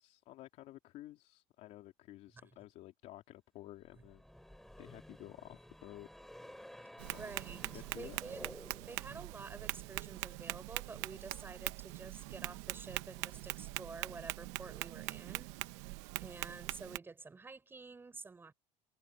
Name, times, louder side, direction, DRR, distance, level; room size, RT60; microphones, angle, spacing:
voice 1, 0.0-4.2 4.8-6.1 7.1-7.2 7.7-8.2, left 15 dB, 55° left, 3.4 m, -52 dB
sound 1, 3.8-9.1, left 1 dB, ahead, 5.4 m, -53 dB
Tap, 7.0-17.0, right 21 dB, 85° right, 0.9 m, -43 dB
voice 2, 7.2-7.6 7.9-8.4 8.9-15.5 16.2-18.5, right 4 dB, 15° right, 5.8 m, -49 dB
cardioid pair, 140°, 15 cm